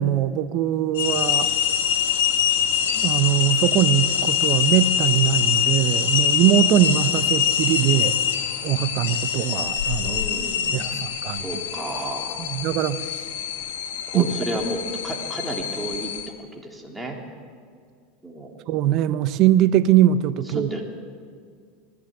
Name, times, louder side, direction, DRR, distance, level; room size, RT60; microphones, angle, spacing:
voice 1, 0.0-1.5 3.0-8.2 8.6-10.2 10.7-11.5 12.4-13.2 14.1-14.3 18.7-20.7, right 11 dB, 55° right, 12 dB, 0.9 m, -21 dB
sound 1, 0.9-16.3, left 9 dB, 80° left, 1.7 m, -24 dB
voice 2, 10.0-10.9 11.3-12.5 14.1-16.1 16.5-17.2 18.2-18.5 20.5-20.9, right 1 dB, 10° right, 0 dB, 3.4 m, -32 dB
20.0 x 16.0 x 8.0 m, 2.1 s
supercardioid pair, 115°, 0 cm